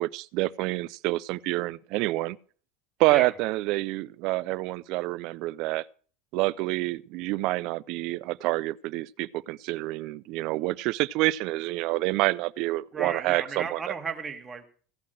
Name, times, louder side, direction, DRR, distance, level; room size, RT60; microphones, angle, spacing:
voice 1, 0.0-2.4 3.0-5.9 6.3-13.9, right 19 dB, 55° right, 0.5 m, -28 dB
voice 2, 12.9-14.6, right 5 dB, 20° right, 1.8 m, -34 dB
16.0 x 5.8 x 7.5 m
supercardioid pair, 140°, 0 cm